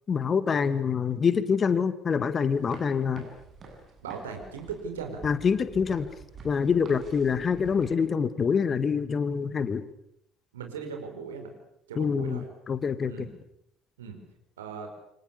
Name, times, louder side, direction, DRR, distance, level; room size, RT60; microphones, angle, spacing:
voice 1, 0.1-3.3 5.2-6.1 6.4-9.8 12.0-13.3, left 6 dB, 35° left, 13 dB, 1.9 m, -26 dB
sound 1, 2.5-7.9, right 4 dB, 40° right, 7.8 m, -47 dB
voice 2, 4.0-5.2 10.5-11.5 11.9-12.4 13.1-13.3 14.0-14.2 14.6-14.9, right 6 dB, 75° right, 4 dB, 5.0 m, -38 dB
28.5 x 25.0 x 7.2 m, 0.74 s
figure-of-eight pair, 55°, 0 cm